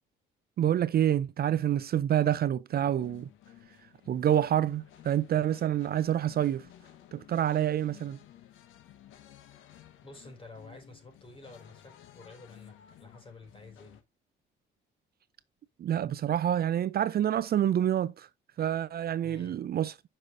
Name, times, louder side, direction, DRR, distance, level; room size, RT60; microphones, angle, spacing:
voice 1, 0.6-3.3 4.1-6.7 7.1-8.2 15.8-18.3 18.6-19.9, right 11 dB, 50° right, 0.4 m, -27 dB
sound 1, 2.7-14.0, left 11 dB, 90° left, 1.2 m, -55 dB
voice 2, 10.0-14.0 19.2-19.6, left 3 dB, 25° left, 4.9 m, -50 dB
10.0 x 5.6 x 2.6 m
cardioid pair, 90°, 20 cm